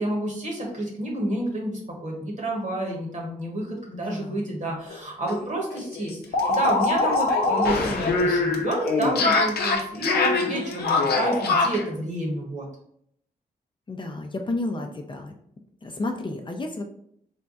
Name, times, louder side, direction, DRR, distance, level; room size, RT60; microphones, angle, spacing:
voice 1, 0.0-12.7, right 1 dB, 50° right, 0 dB, 1.4 m, -29 dB
voice 2, 3.9-4.5 13.9-15.3 15.8-16.8, left 2 dB, 30° left, 3 dB, 0.5 m, -31 dB
sound 1, 4.9-5.0 5.3-5.4 5.7-11.9, left 3 dB, 85° left, 0.6 m, -23 dB
3.5 x 2.2 x 4.0 m, 0.69 s
cardioid pair, 65°, 16 cm